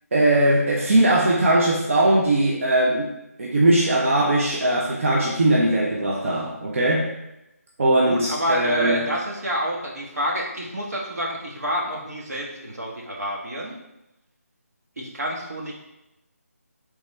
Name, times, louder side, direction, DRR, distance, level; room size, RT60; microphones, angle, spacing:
voice 1, 0.1-7.1 7.8-9.1, right 1 dB, 55° right, -2 dB, 0.6 m, -20 dB
voice 2, 8.0-13.8 15.0-15.7, equal, 75° right, -3 dB, 1.3 m, -28 dB
4.0 x 3.5 x 3.2 m, 0.93 s
figure-of-eight pair, 165°, 9 cm